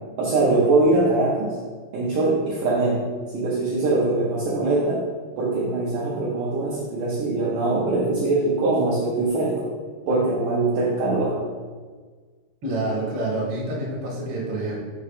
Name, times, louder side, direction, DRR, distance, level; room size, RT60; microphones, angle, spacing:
voice 1, 0.2-1.6 1.9-3.0 3.3-5.0 5.4-9.7 10.1-11.4, right 2 dB, 75° right, -6 dB, 2.0 m, -22 dB
voice 2, 12.6-14.8, right 2 dB, 55° right, -5 dB, 1.5 m, -27 dB
6.7 x 2.9 x 4.9 m, 1.5 s
omnidirectional pair, 4.6 m